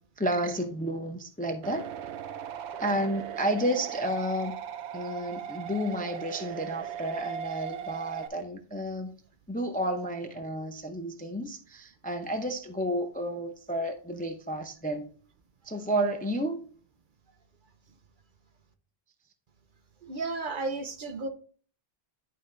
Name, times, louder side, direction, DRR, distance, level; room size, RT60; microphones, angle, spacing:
voice 1, 0.2-1.9 2.8-4.6 4.9-9.1 9.5-15.1 15.6-16.6, right 1 dB, 10° left, 0.5 m, -31 dB
sound 1, 1.6-8.3, right 8 dB, 90° right, 0.9 m, -38 dB
voice 2, 20.0-21.3, right 3 dB, 55° right, 0.9 m, -33 dB
11.0 x 3.7 x 3.2 m
omnidirectional pair, 1.1 m